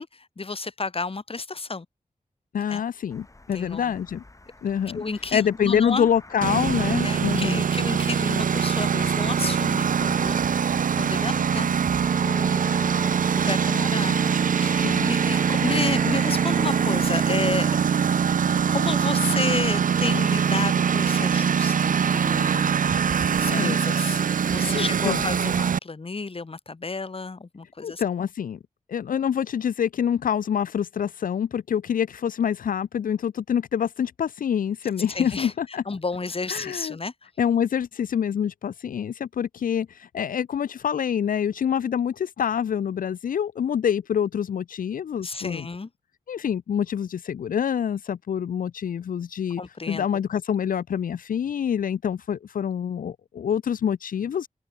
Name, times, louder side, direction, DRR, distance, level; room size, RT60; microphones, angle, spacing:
voice 1, 0.0-1.9 2.7-2.8 3.5-4.0 4.9-6.1 7.0-11.8 12.2-17.7 18.7-22.7 23.4-24.2 24.5-28.0 35.1-37.1 45.2-45.9 49.6-50.1, left 3 dB, 45° left, 1.5 m, -32 dB
voice 2, 2.5-4.2 4.6-5.0 5.3-7.6 14.8-15.1 23.5-23.8 24.7-25.2 27.8-28.6 28.9-35.8 36.5-37.0 37.4-45.7 46.3-49.6 49.9-54.5, left 8 dB, 90° left, 0.4 m, -26 dB
sound 1, 3.1-19.8, left 2 dB, 25° left, 1.8 m, -48 dB
Engine, 6.4-25.8, right 7 dB, 75° right, 0.5 m, -23 dB
Bowed string instrument, 11.9-16.9, right 2 dB, 25° right, 1.5 m, -38 dB
wide cardioid pair, 90°, 14 cm